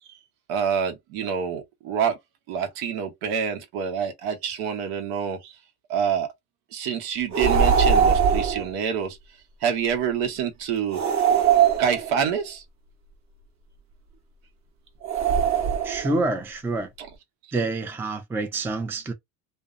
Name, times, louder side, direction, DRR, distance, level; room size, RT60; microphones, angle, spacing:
voice 1, 0.5-2.2 2.5-5.5 5.9-6.3 6.7-9.2 9.6-11.0 11.6-12.6 17.0-17.1, right 7 dB, 70° right, 1.0 m, -27 dB
sound 1, 7.3-8.7 10.9-12.3 15.0-16.2, right 7 dB, 40° right, 1.0 m, -21 dB
voice 2, 15.8-16.9 17.5-19.1, right 2 dB, 5° right, 0.4 m, -27 dB
2.6 x 2.1 x 2.4 m
supercardioid pair, 95°, 44 cm